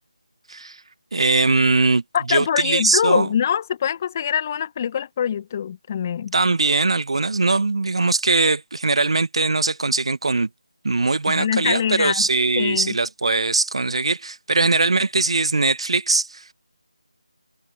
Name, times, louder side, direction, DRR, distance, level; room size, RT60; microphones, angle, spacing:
voice 1, 0.5-0.8 1.1-2.0 2.3-3.3 6.3-10.5 10.8-16.5, right 3 dB, 55° right, 1.2 m, -21 dB
voice 2, 2.1-6.3 11.3-12.2 12.6-12.9, left 8 dB, 25° left, 1.0 m, -24 dB
figure-of-eight pair, 160°, 4 cm